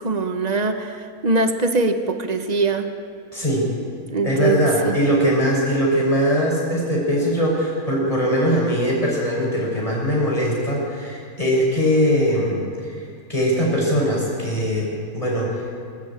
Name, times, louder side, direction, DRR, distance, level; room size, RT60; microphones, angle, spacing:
voice 1, 0.0-2.9 4.1-4.9, right 3 dB, 25° right, 7 dB, 1.3 m, -22 dB
voice 2, 3.3-3.7 4.2-15.7, equal, 20° left, -4 dB, 6.6 m, -21 dB
25.0 x 13.0 x 8.9 m, 2.3 s
omnidirectional pair, 1.7 m